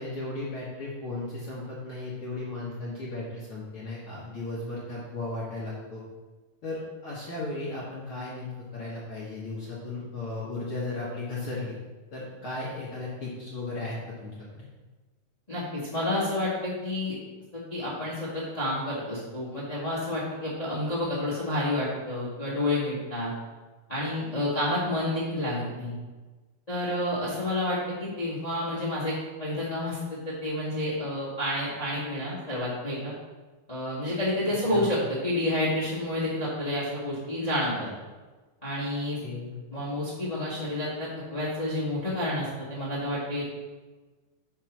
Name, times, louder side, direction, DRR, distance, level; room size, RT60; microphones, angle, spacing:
voice 1, 0.0-6.0 6.6-11.8 12.1-14.6 34.7-34.9 39.2-39.5, left 2 dB, 55° left, -7 dB, 1.4 m, -35 dB
voice 2, 15.5-17.1 17.5-23.3 23.9-26.0 26.7-29.1 29.4-33.1 33.7-37.9 38.6-39.2 39.7-43.4, left 1 dB, 20° left, -8 dB, 1.0 m, -29 dB
6.0 x 4.8 x 6.0 m, 1.3 s
omnidirectional pair, 4.2 m